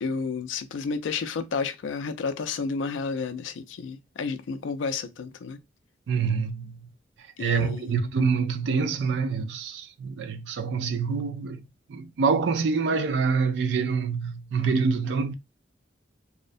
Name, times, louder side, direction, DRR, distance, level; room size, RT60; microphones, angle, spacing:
voice 1, 0.0-5.6 7.4-8.1, left 5 dB, 85° left, 0.4 m, -31 dB
voice 2, 6.1-6.8 7.4-11.6 11.9-15.3, right 5 dB, 65° right, 0.3 m, -26 dB
2.4 x 2.1 x 2.5 m
head